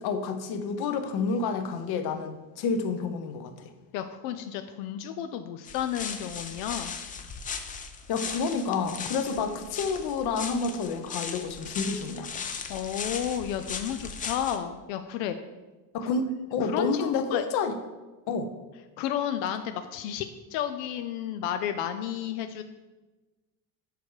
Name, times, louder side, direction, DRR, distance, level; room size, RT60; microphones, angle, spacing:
voice 1, 0.0-3.7 8.1-12.3 15.9-17.8 18.3-18.5, left 4 dB, 55° left, 8 dB, 0.9 m, -29 dB
voice 2, 3.9-7.0 12.7-15.4 16.0-16.1 16.6-17.4 19.0-22.6, left 10 dB, 85° left, 8 dB, 0.6 m, -32 dB
sound 1, 5.7-14.6, left 6 dB, 20° left, 0.3 m, -38 dB
6.9 x 4.6 x 4.8 m, 1.2 s
supercardioid pair, 120°, 47 cm